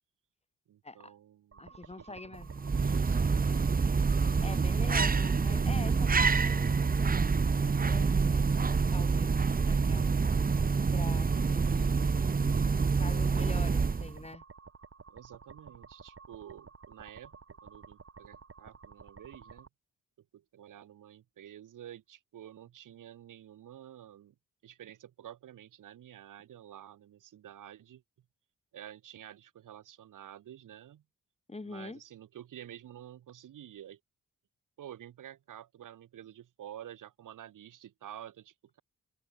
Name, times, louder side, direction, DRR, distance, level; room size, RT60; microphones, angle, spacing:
voice 1, 0.7-1.7 2.0-2.4 2.7-3.4 11.6-12.0 15.1-19.7 20.3-24.3 24.6-28.0 28.7-31.0 31.6-34.0 34.8-38.8, right 11 dB, 85° right, 1.8 m, -50 dB
sound 1, 1.5-19.7, right 5 dB, 45° right, 5.3 m, -52 dB
voice 2, 1.6-2.6 4.1-7.3 7.7-10.1 10.9-12.2 13.0-14.4 31.5-32.0, left 2 dB, 20° left, 1.5 m, -45 dB
sound 2, 2.4-14.2, right 5 dB, 30° right, 0.9 m, -27 dB
open air
cardioid pair, 65°, 31 cm